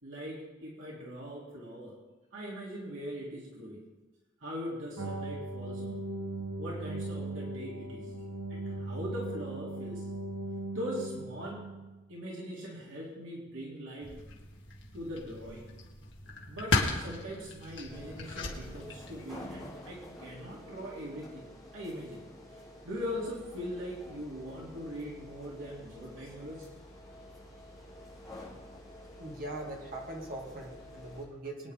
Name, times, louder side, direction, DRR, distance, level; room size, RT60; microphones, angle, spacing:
voice 1, 0.0-2.0 2.3-3.8 4.4-6.0 6.6-8.1 8.5-10.1 10.7-11.7 12.1-14.2 14.9-15.7 16.5-22.2 22.5-26.7, equal, 70° right, -4 dB, 3.1 m, -41 dB
sound 1, 5.0-12.0, right 2 dB, 90° right, 1.5 m, -38 dB
sound 2, 14.0-19.4, left 3 dB, 55° left, 2.1 m, -36 dB
sound 3, 17.9-31.2, left 1 dB, ahead, 4.7 m, -49 dB
voice 2, 29.2-31.7, right 1 dB, 45° right, 0 dB, 2.2 m, -41 dB
23.0 x 9.7 x 3.7 m, 1.2 s
head